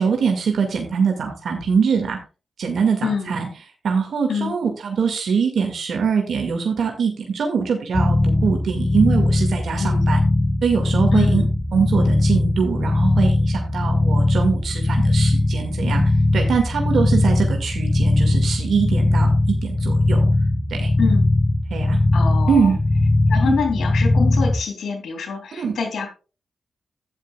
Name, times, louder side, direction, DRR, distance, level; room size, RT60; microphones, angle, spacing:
voice 1, 0.0-2.2 2.6-3.5 3.8-10.2 10.6-11.4 11.7-19.3 19.6-20.3 20.7-20.9 21.7-22.0 22.5-22.8 23.4-23.5 25.6-25.7, right 6 dB, 80° right, 3 dB, 2.0 m, -22 dB
sound 1, 7.9-24.6, left 2 dB, 35° left, 3.1 m, -19 dB
voice 2, 11.1-11.5 21.0-21.2 22.1-22.7 23.3-26.1, left 6 dB, 85° left, 4 dB, 2.8 m, -25 dB
12.0 x 10.5 x 2.3 m, 0.33 s
cardioid pair, 60°, 0 cm